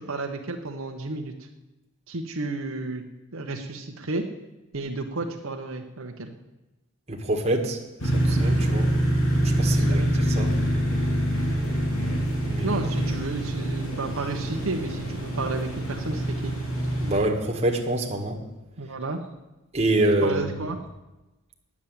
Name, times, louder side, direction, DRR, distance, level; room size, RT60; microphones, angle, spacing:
voice 1, 0.1-1.3 2.1-3.1 3.3-4.2 4.7-6.3 9.7-10.1 12.6-16.5 18.8-19.2 20.2-20.8, right 2 dB, 75° right, 3 dB, 1.1 m, -32 dB
voice 2, 7.1-7.8 8.1-8.9 9.6-10.5 12.4-12.8 17.0-18.4 19.7-20.4, right 1 dB, 30° right, 1 dB, 1.6 m, -25 dB
sound 1, 8.0-17.2, right 1 dB, 75° left, 3.1 m, -25 dB
9.7 x 7.3 x 8.9 m, 1.0 s
head